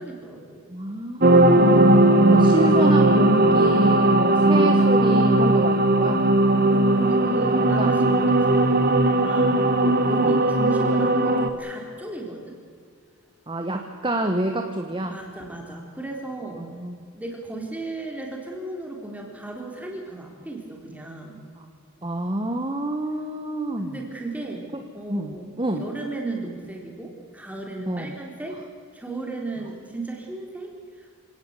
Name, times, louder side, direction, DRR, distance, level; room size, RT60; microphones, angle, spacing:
voice 1, 0.0-0.6 4.3-4.4 6.7-12.6 15.1-16.7 17.1-21.4 23.8-24.7 24.9-28.6 28.9-31.2, right 2 dB, 5° right, 0 dB, 3.8 m, -35 dB
voice 2, 0.7-6.2 7.8-7.9 10.2-10.4 13.5-15.2 16.6-17.0 21.6-21.7 22.0-23.9 25.1-25.9 27.9-28.1, right 1 dB, 20° right, 5 dB, 1.2 m, -28 dB
sound 1, 1.2-11.5, right 1 dB, 40° right, 1.4 m, -18 dB
26.5 x 18.0 x 8.3 m, 2.2 s
head